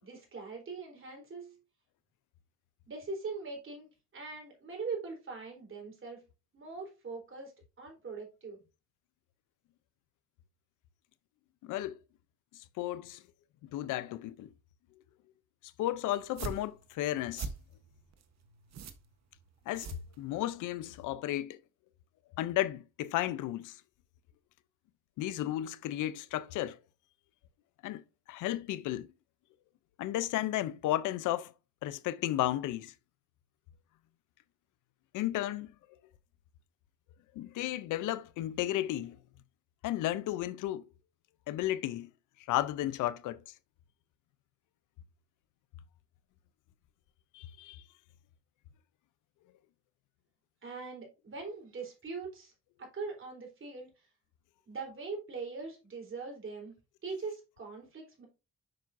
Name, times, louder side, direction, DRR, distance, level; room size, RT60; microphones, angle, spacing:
voice 1, 0.0-1.6 2.9-6.2 6.5-7.5 7.8-8.6 50.6-52.5 52.8-53.9 54.7-56.7 57.0-58.3, right 4 dB, 45° right, 3.7 m, -41 dB
voice 2, 11.6-12.0 12.8-13.2 13.7-14.5 15.8-17.5 19.7-21.6 22.4-23.8 25.2-26.8 27.8-28.0 28.3-29.1 30.0-31.5 31.8-32.9 35.1-35.7 37.4-39.2 39.8-40.8 41.5-42.1 42.5-43.4 47.3-47.8, left 14 dB, 90° left, 0.6 m, -33 dB
sound 1, 16.2-20.7, right 5 dB, 60° right, 1.1 m, -44 dB
7.7 x 5.8 x 2.6 m
cardioid pair, 90°, 30 cm